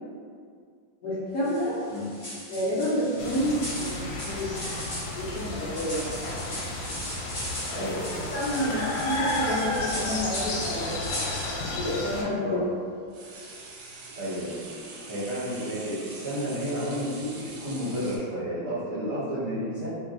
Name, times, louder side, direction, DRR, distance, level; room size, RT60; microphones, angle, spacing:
voice 1, 1.0-1.8 2.5-4.5 5.1-6.0 7.7-7.8 8.3-11.1 11.7-12.6, equal, 70° left, -9 dB, 0.9 m, -29 dB
sound 1, 1.3-9.4 10.6-10.7 11.5-18.2, right 3 dB, 90° right, 1.3 m, -47 dB
sound 2, 1.4-11.5, left 1 dB, 50° left, 0.6 m, -38 dB
sound 3, 3.2-12.2, left 2 dB, 90° left, 1.4 m, -33 dB
voice 2, 7.7-8.2 8.6-8.7 12.4-12.6 14.1-14.6 15.1-19.9, equal, 60° right, -11 dB, 0.9 m, -31 dB
2.9 x 2.5 x 2.4 m, 2.2 s
omnidirectional pair, 2.0 m